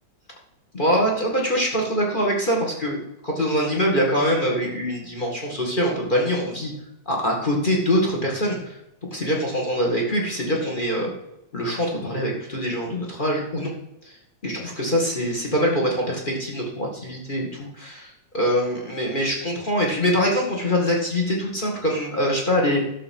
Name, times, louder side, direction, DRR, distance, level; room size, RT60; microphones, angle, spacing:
voice 1, 0.7-3.0 3.2-6.7 7.1-8.7 9.1-11.1 11.5-13.7 14.0-14.1 14.4-22.8, equal, 20° left, -1 dB, 1.9 m, -24 dB
12.5 x 6.9 x 5.5 m, 0.85 s
omnidirectional pair, 3.5 m